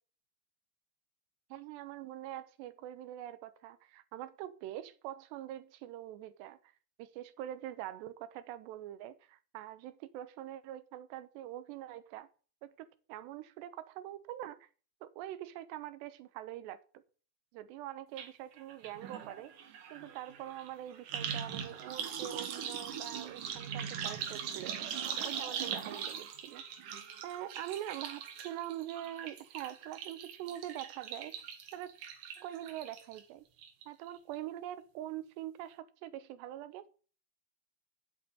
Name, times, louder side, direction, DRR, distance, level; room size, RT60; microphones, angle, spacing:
voice 1, 1.5-6.6 7.0-12.3 12.6-14.7 15.0-16.8 17.5-19.5 19.9-24.9 25.2-26.6 27.2-31.3 31.7-31.9 32.4-33.4 33.9-36.9, right 13 dB, 80° right, 3.0 m, -44 dB
sound 1, 18.2-18.3 18.6-33.2 33.6-34.1 34.3-34.4, right 8 dB, 60° right, 2.5 m, -41 dB
8.6 x 8.1 x 8.8 m
omnidirectional pair, 5.1 m